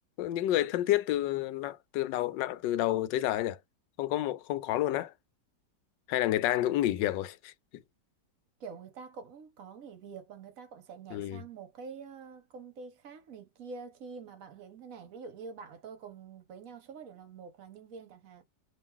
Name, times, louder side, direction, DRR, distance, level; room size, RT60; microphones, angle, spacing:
voice 1, 0.2-3.6 4.0-5.1 6.1-7.5 11.1-11.4, left 14 dB, 90° left, 1.2 m, -29 dB
voice 2, 8.6-18.4, right 5 dB, 60° right, 1.1 m, -46 dB
3.0 x 2.9 x 3.6 m
omnidirectional pair, 1.9 m